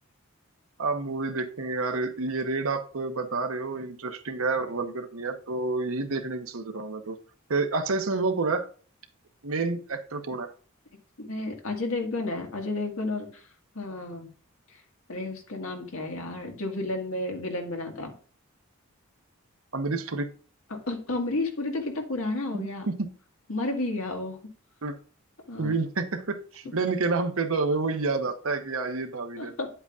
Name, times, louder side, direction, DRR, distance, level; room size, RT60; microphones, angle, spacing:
voice 1, 0.8-7.2 7.5-8.7 9.4-10.5 19.7-20.3 22.5-23.1 24.8-25.0 25.6-29.5, right 3 dB, 75° right, 1.1 m, -29 dB
voice 2, 11.2-13.5 13.8-14.3 14.7-14.8 15.1-18.1 20.7-22.9 23.5-24.4 25.5-25.7 29.4-29.7, left 2 dB, 75° left, 1.8 m, -32 dB
9.6 x 8.0 x 2.5 m
head